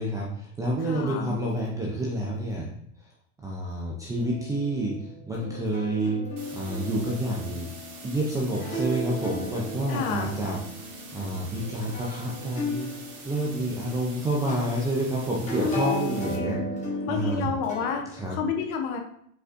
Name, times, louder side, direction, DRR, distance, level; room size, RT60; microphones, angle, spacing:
voice 1, 0.0-2.7 3.0-3.1 3.4-7.7 8.0-12.9 13.2-17.5 18.1-18.4, right 1 dB, 10° right, -3 dB, 0.4 m, -29 dB
voice 2, 0.9-1.3 9.9-10.4 15.6-16.7 17.1-19.0, left 6 dB, 45° left, 4 dB, 0.9 m, -30 dB
sound 1, 4.2-18.0, equal, 15° left, 1.2 m, -36 dB
sound 2, 6.4-16.4, right 3 dB, 70° right, 1.8 m, -46 dB
5.1 x 4.0 x 2.5 m, 0.68 s
hypercardioid pair, 120°, 43 cm